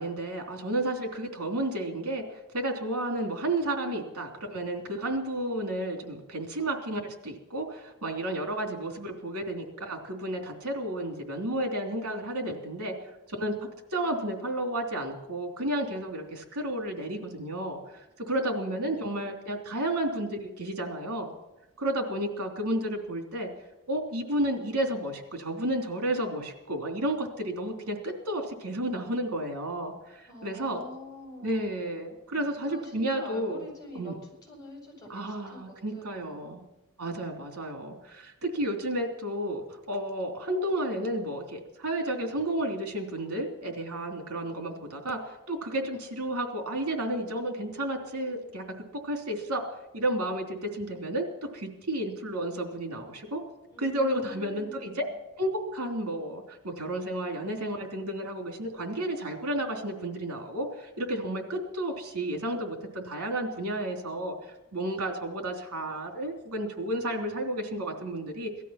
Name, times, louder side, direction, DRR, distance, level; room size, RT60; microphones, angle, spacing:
voice 1, 0.0-12.9 13.3-17.8 18.2-21.3 21.8-23.5 23.9-30.8 31.4-33.6 33.9-34.1 35.1-36.6 37.0-48.8 49.0-49.6 49.9-51.3 51.5-53.4 53.8-55.0 55.4-64.3 64.7-68.5, right 1 dB, 90° right, 3 dB, 3.3 m, -32 dB
voice 2, 18.4-19.3 30.3-31.8 32.7-36.5 53.7-55.1, left 1 dB, 15° left, -1 dB, 7.7 m, -46 dB
18.5 x 13.0 x 5.9 m, 0.92 s
head